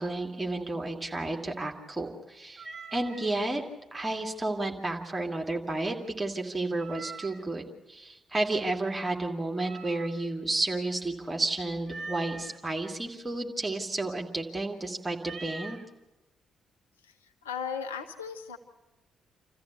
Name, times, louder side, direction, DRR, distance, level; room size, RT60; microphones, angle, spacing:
voice 1, 0.0-2.6 2.9-3.6 3.9-15.8, right 2 dB, 15° right, 2 dB, 2.6 m, -32 dB
Meow, 2.6-3.3 6.8-7.5 9.6-10.4 11.8-12.6 15.2-15.8, right 4 dB, 50° right, 1.4 m, -43 dB
voice 2, 17.4-18.6, left 7 dB, 80° left, 4 dB, 1.0 m, -36 dB
27.5 x 14.5 x 8.3 m, 1.1 s
figure-of-eight pair, 40°, 0 cm